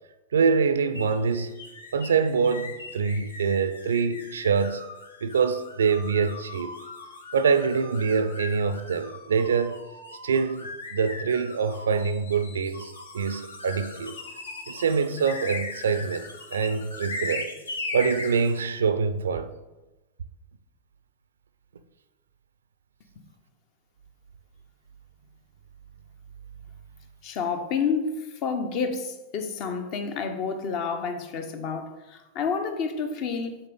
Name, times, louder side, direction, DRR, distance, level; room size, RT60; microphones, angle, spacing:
voice 1, 0.3-1.6 1.9-4.8 5.2-6.8 7.3-9.8 10.2-14.2 14.7-17.5 17.9-19.5, right 5 dB, 70° right, 0.4 m, -25 dB
sound 1, 0.9-18.6, left 3 dB, 75° left, 0.9 m, -39 dB
voice 2, 27.2-33.6, left 5 dB, 40° left, 0.7 m, -29 dB
6.5 x 4.0 x 3.8 m
figure-of-eight pair, 90°, 0 cm